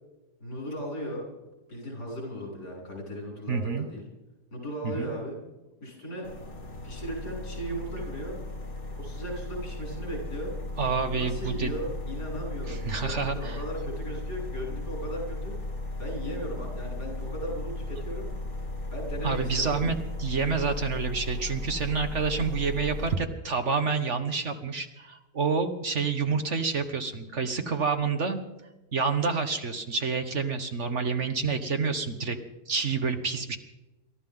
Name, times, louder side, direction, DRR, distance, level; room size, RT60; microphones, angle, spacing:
voice 1, 0.4-1.3 1.7-4.0 4.5-5.4 5.8-6.3 6.8-8.4 9.0-10.5 11.1-15.6 16.0-18.3 18.9-19.9 32.0-32.3, right 1 dB, 80° left, -2 dB, 7.6 m, -37 dB
voice 2, 3.5-3.9 4.8-5.1 10.8-11.7 12.7-13.6 19.2-28.4 28.9-32.4 32.7-33.6, right 5 dB, 50° right, 6 dB, 1.4 m, -28 dB
sound 1, 6.2-23.2, left 1 dB, 60° left, 2.7 m, -36 dB
28.0 x 13.5 x 3.8 m, 1.0 s
omnidirectional pair, 1.7 m